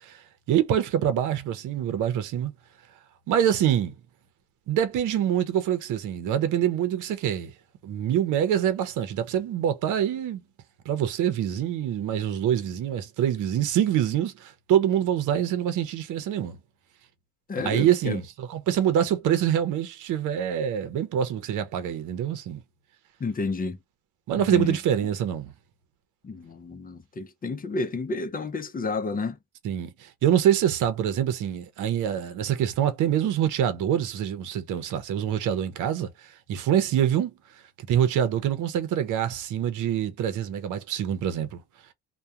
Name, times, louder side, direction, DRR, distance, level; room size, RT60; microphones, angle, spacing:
voice 1, 0.0-2.5 3.3-3.9 4.7-7.5 7.8-10.4 10.8-16.6 17.6-22.6 24.3-25.5 29.6-37.3 37.9-41.6, right 10 dB, 80° right, 0.7 m, -25 dB
voice 2, 17.5-18.2 23.2-23.8 24.5-24.8 26.2-29.4, left 3 dB, 30° left, 0.6 m, -30 dB
2.2 x 2.2 x 2.8 m
cardioid pair, 90°, 30 cm